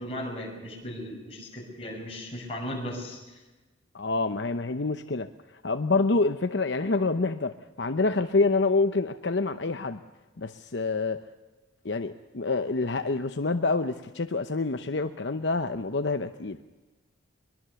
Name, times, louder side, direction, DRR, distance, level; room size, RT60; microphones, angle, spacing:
voice 1, 0.0-3.4, equal, 30° left, 0 dB, 6.2 m, -37 dB
voice 2, 3.9-10.0 10.4-11.2 11.8-16.6, left 3 dB, 65° left, 8 dB, 0.8 m, -27 dB
22.5 x 22.5 x 7.0 m, 1.2 s
head